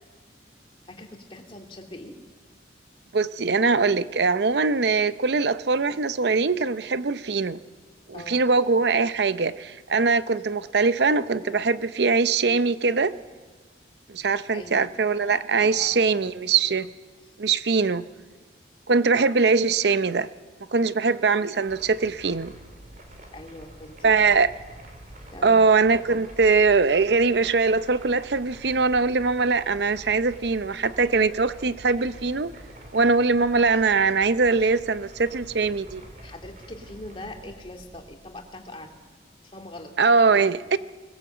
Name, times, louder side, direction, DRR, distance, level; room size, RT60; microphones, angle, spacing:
voice 1, 0.9-2.2 8.1-8.5 14.5-14.9 15.6-16.3 17.3-17.4 20.8-21.0 23.3-24.2 25.3-25.6 36.2-38.9 39.4-39.9, left 1 dB, 30° left, 2 dB, 2.4 m, -42 dB
voice 2, 3.1-7.6 8.1-13.1 14.1-16.9 17.4-18.1 18.9-20.3 20.7-22.5 24.0-24.5 25.4-32.5 32.9-36.0 40.0-40.8, right 4 dB, 65° right, 14 dB, 0.6 m, -22 dB
sound 1, 21.6-39.0, right 1 dB, 45° right, 3.4 m, -47 dB
20.5 x 20.0 x 7.9 m, 1.4 s
head